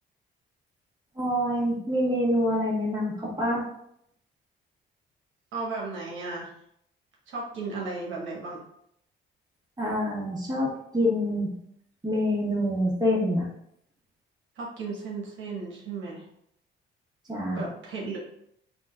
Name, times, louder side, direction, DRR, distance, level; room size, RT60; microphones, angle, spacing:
voice 1, 1.1-3.6 9.8-11.5 12.0-13.5 17.3-17.7, equal, 20° right, -4 dB, 1.4 m, -26 dB
voice 2, 5.5-6.5 7.3-8.6 14.6-16.3 17.5-18.2, right 3 dB, 75° right, -2 dB, 1.0 m, -35 dB
3.7 x 2.4 x 3.4 m, 0.72 s
cardioid pair, 90°, 20 cm